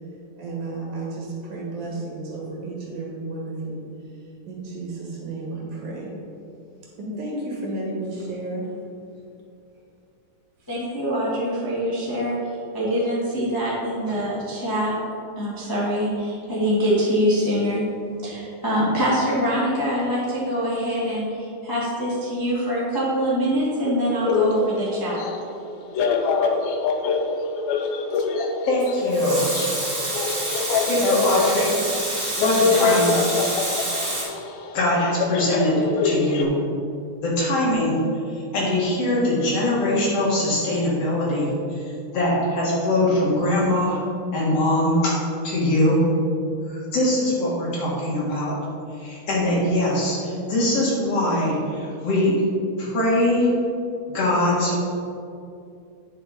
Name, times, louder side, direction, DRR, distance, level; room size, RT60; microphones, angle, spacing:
voice 1, 0.3-6.1 7.0-8.7 9.7-9.8 10.6-10.7, right 2 dB, 75° right, -4 dB, 3.2 m, -32 dB
voice 2, 10.7-12.4 12.7-14.9 15.4-17.8 18.2-25.2, equal, 10° left, -8 dB, 0.9 m, -24 dB
sound 1, 24.3-36.4, left 5 dB, 80° left, 1.8 m, -25 dB
voice 3, 28.7-29.5 30.9-31.8 32.4-33.2 34.7-36.5 37.2-38.0 38.5-41.8 42.1-44.0 44.3-45.2 45.4-46.0 46.7-48.5 49.0-52.4 52.8-53.5 54.1-54.8, left 1 dB, 55° left, -6 dB, 2.6 m, -22 dB
Water tap faucet / Sink (filling or washing) / Liquid, 28.8-34.2, right 1 dB, 35° right, 2.3 m, -27 dB
9.1 x 6.1 x 4.1 m, 2.5 s
omnidirectional pair, 3.4 m